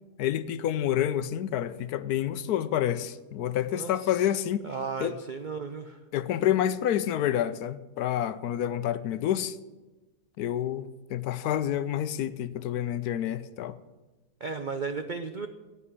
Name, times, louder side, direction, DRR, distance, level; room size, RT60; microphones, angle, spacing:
voice 1, 0.2-4.6 5.0-5.1 6.1-9.6 10.4-13.8, left 11 dB, 70° left, 1.0 m, -28 dB
voice 2, 3.6-4.3 4.6-6.0 14.4-15.5, right 5 dB, 80° right, 0.4 m, -35 dB
11.0 x 8.4 x 8.4 m
omnidirectional pair, 1.8 m